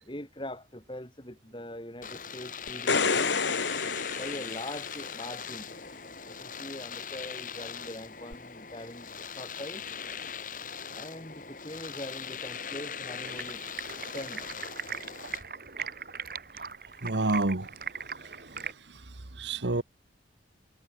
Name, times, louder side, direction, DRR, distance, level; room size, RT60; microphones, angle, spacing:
voice 1, 0.0-3.4 4.1-5.7 6.3-9.8 10.9-13.6 14.1-14.5, left 1 dB, 25° left, 6.2 m, -42 dB
Domestic sounds home sounds, 2.0-15.4, left 7 dB, 50° left, 3.4 m, -40 dB
sound 1, 2.7-5.2 8.3-8.4, left 5 dB, 85° left, 1.6 m, -29 dB
Stream, 13.2-18.7, right 6 dB, 55° right, 3.0 m, -40 dB
voice 2, 17.0-17.7 19.4-19.8, right 2 dB, 80° right, 1.4 m, -28 dB
head